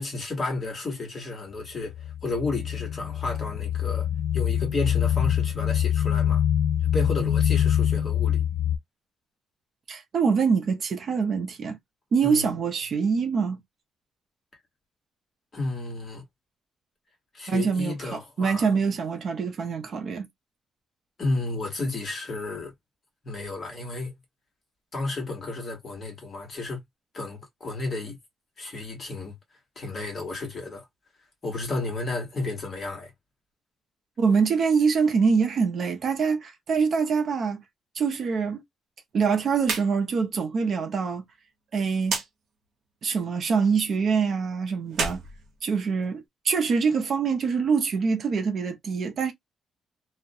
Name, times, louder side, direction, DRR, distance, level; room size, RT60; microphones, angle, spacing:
voice 1, 0.0-4.1 4.3-6.4 6.9-8.4 12.2-12.5 15.5-16.2 17.3-18.6 21.2-22.7 23.2-24.2 24.9-26.8 27.1-28.2 28.6-29.3 29.8-30.8 31.4-33.1, left 2 dB, 30° left, 1.1 m, -32 dB
sound 1, 1.9-8.8, left 10 dB, 85° left, 0.3 m, -24 dB
voice 2, 9.9-11.8 12.1-13.6 17.5-20.3 34.2-37.6 37.9-38.6 39.1-41.2 41.7-42.2 43.0-45.2 45.6-49.3, right 5 dB, 45° right, 0.5 m, -24 dB
sound 2, 39.6-39.9 40.2-40.3 42.0-42.3 44.8-46.2, right 5 dB, 70° right, 0.8 m, -30 dB
2.3 x 2.1 x 2.6 m
cardioid pair, 155°, 0 cm